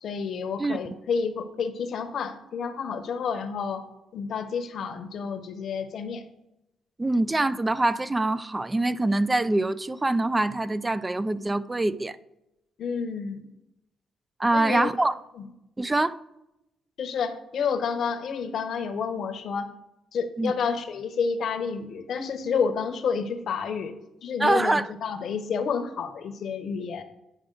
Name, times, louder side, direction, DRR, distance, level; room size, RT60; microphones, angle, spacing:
voice 1, 0.0-3.9 4.1-6.2 12.8-13.4 14.5-15.1 15.4-15.5 17.0-19.7 20.1-23.9 24.2-27.0, left 6 dB, 60° left, 0.8 m, -30 dB
voice 2, 7.0-12.2 14.4-15.2 15.8-16.2 20.4-20.5 24.4-24.9, right 2 dB, 15° right, 0.4 m, -24 dB
10.0 x 4.8 x 3.8 m
cardioid pair, 90°, 0 cm